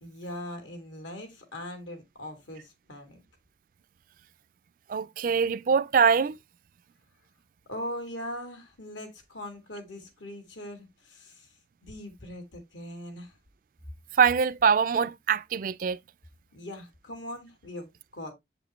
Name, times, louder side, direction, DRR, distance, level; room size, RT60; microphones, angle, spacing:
voice 1, 0.0-3.2 7.7-11.5 11.8-13.3 16.5-18.3, left 1 dB, 80° left, 2.3 m, -40 dB
voice 2, 4.9-6.4 14.2-16.0, right 6 dB, 45° right, 0.3 m, -23 dB
7.5 x 5.1 x 3.0 m
head